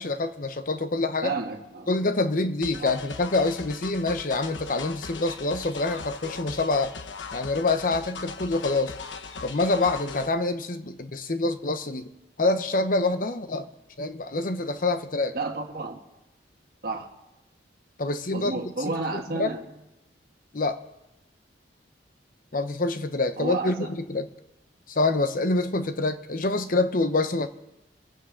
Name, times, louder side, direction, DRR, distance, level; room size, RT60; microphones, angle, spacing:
voice 1, 0.0-1.3 1.9-6.9 7.3-9.0 9.4-12.1 12.4-13.7 14.0-15.4 18.0-18.6 19.1-19.5 20.5-20.8 22.5-24.3 24.9-27.5, left 2 dB, 45° left, 9 dB, 0.8 m, -26 dB
voice 2, 1.2-1.9 2.8-2.9 15.3-16.0 16.8-17.1 18.3-19.6 23.4-23.9, right 3 dB, 55° right, 1 dB, 1.4 m, -31 dB
sound 1, 2.6-10.3, left 5 dB, 90° left, 0.9 m, -39 dB
25.5 x 9.2 x 3.8 m, 0.96 s
head